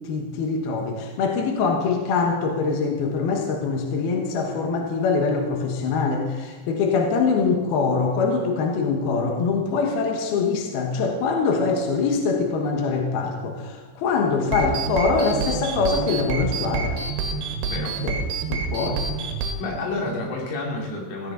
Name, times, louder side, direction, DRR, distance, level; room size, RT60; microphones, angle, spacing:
voice 1, 0.0-17.0 18.0-18.2 18.5-19.0, left 4 dB, 65° left, 2 dB, 2.8 m, -23 dB
sound 1, 14.4-19.5, right 4 dB, 65° right, 3.2 m, -28 dB
voice 2, 19.6-21.3, left 2 dB, 85° left, 0 dB, 5.4 m, -29 dB
16.5 x 16.5 x 4.0 m, 1.3 s
omnidirectional pair, 5.6 m